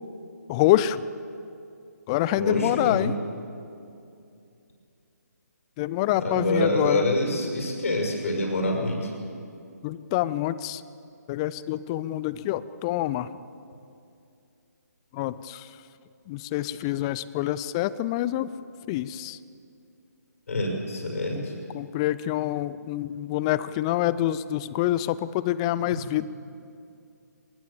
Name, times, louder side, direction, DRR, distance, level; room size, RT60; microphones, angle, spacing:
voice 1, 0.5-1.0 2.1-3.1 5.8-7.0 9.8-10.8 11.3-13.3 15.1-15.7 16.3-18.5 18.9-19.4 21.7-26.3, left 14 dB, 20° left, 17 dB, 0.5 m, -26 dB
voice 2, 2.4-3.1 6.2-9.1 20.5-21.5 25.9-26.0, left 1 dB, 50° left, 1 dB, 6.3 m, -26 dB
22.5 x 22.0 x 7.3 m, 2.6 s
figure-of-eight pair, 145°, 10 cm